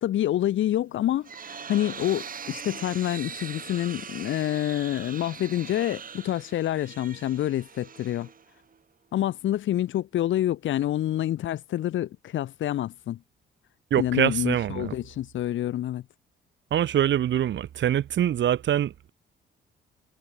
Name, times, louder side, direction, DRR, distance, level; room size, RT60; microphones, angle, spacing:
voice 1, 0.0-8.3 9.1-13.2 14.0-16.0, left 12 dB, 75° left, 2.2 m, -27 dB
sound 1, 0.9-8.8, right 6 dB, 45° right, 4.1 m, -41 dB
voice 2, 13.9-14.9 16.7-19.1, right 10 dB, 65° right, 3.2 m, -24 dB
cardioid pair, 90°, 20 cm